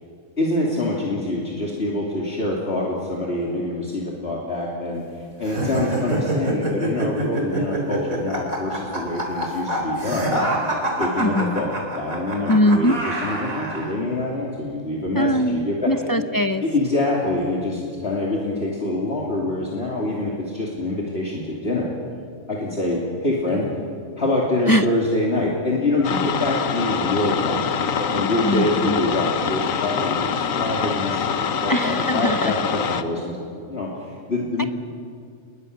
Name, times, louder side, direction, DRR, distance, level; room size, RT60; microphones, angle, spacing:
voice 1, 0.4-10.4 11.0-15.9 16.6-21.9 22.5-23.7 24.2-33.9 34.3-34.7, left 2 dB, 45° left, -4 dB, 3.1 m, -25 dB
sound 1, 5.4-13.9, right 1 dB, 70° right, 4.5 m, -26 dB
voice 2, 11.2-11.6 12.5-13.0 15.1-16.6 24.7-24.8 28.4-29.0 31.7-32.5 34.6-34.7, equal, 20° left, 7 dB, 0.7 m, -21 dB
sound 2, 26.0-33.0, left 7 dB, 70° left, 1.4 m, -25 dB
30.0 x 21.0 x 6.7 m, 2.3 s
omnidirectional pair, 1.5 m